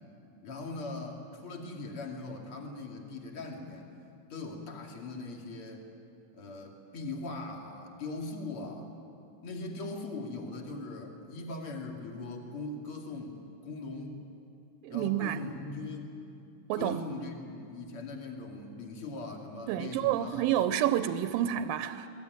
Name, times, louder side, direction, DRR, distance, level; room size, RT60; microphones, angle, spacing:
voice 1, 0.4-3.9 4.3-5.8 6.3-8.9 9.4-14.2 14.9-16.1 16.7-20.5, left 2 dB, 40° left, 2 dB, 3.0 m, -40 dB
voice 2, 14.8-15.4 16.7-17.0 19.7-22.1, right 11 dB, 85° right, 10 dB, 2.4 m, -29 dB
26.0 x 19.5 x 9.3 m, 2.7 s
omnidirectional pair, 4.1 m